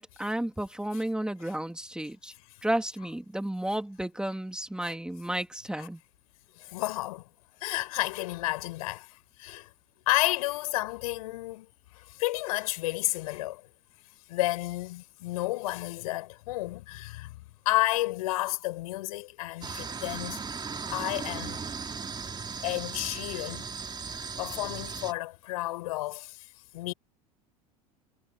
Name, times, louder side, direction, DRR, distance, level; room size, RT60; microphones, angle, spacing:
voice 1, 0.0-2.3 2.6-6.0, right 1 dB, 5° right, 3.2 m, -32 dB
voice 2, 6.6-7.3 7.6-9.7 10.1-11.7 11.9-13.6 14.3-17.3 17.7-20.4 20.9-21.7 22.6-23.7 24.4-26.5 26.7-26.9, left 18 dB, 70° left, 5.9 m, -31 dB
sound 1, 19.6-25.1, right 5 dB, 20° right, 2.8 m, -37 dB
hypercardioid pair, 85°, 19 cm